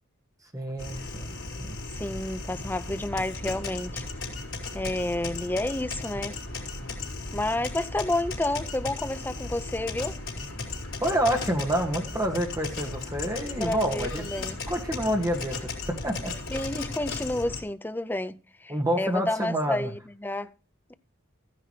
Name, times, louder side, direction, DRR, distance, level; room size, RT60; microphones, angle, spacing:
voice 1, 0.5-1.8 11.0-14.2 14.7-16.3 18.7-19.9, equal, 15° right, 2.0 m, -28 dB
sound 1, 0.8-17.6, left 3 dB, 70° left, 3.7 m, -36 dB
voice 2, 1.9-4.0 4.7-6.4 7.3-10.2 13.6-14.6 16.5-20.5 20.9-21.0, left 1 dB, 10° left, 0.5 m, -30 dB
14.5 x 9.9 x 3.2 m
head